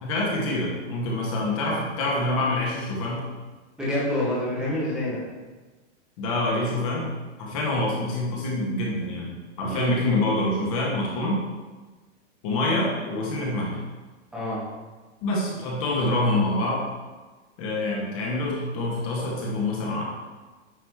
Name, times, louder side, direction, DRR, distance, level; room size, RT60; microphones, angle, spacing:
voice 1, 0.0-3.3 6.2-7.1 7.4-11.4 12.4-13.8 15.2-16.9 17.6-20.0, left 1 dB, 30° left, -3 dB, 1.4 m, -26 dB
voice 2, 3.8-5.2 9.7-9.9 14.3-14.6, left 1 dB, ahead, -9 dB, 1.2 m, -27 dB
9.3 x 3.1 x 4.7 m, 1.3 s
supercardioid pair, 175°, 36 cm